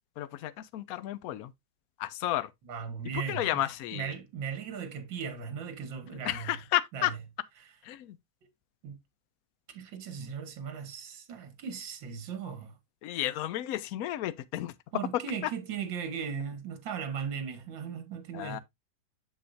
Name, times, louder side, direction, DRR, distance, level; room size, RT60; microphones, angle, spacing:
voice 1, 0.2-1.5 2.0-2.5 3.3-4.1 6.2-7.1 7.9-8.1 13.0-14.7 18.3-18.6, left 13 dB, 80° left, 0.8 m, -32 dB
voice 2, 2.6-6.6 6.9-7.2 7.6-7.8 8.8-9.0 9.7-12.8 14.9-18.6, right 7 dB, 70° right, 2.1 m, -38 dB
7.3 x 7.0 x 2.5 m
omnidirectional pair, 2.1 m